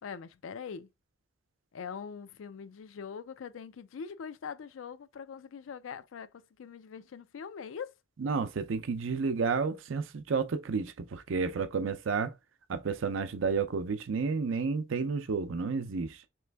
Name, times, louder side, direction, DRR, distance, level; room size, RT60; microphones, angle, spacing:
voice 1, 0.0-0.9 1.7-7.9, left 6 dB, 85° left, 0.4 m, -42 dB
voice 2, 8.2-12.3 12.7-16.2, right 5 dB, 85° right, 0.5 m, -31 dB
3.3 x 3.1 x 3.3 m
head